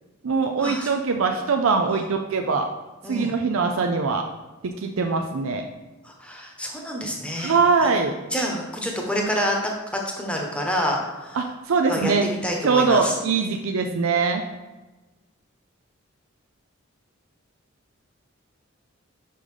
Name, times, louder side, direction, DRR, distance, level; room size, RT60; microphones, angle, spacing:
voice 1, 0.2-2.7 3.1-4.2 4.6-5.6 7.4-8.1 11.3-12.2 12.6-14.4, right 4 dB, 90° right, 4 dB, 0.5 m, -22 dB
voice 2, 3.0-3.4 6.0-7.5 7.8-7.9 8.3-11.4 11.9-13.2, equal, 5° left, 0 dB, 1.0 m, -28 dB
5.5 x 5.3 x 4.9 m, 1.1 s
head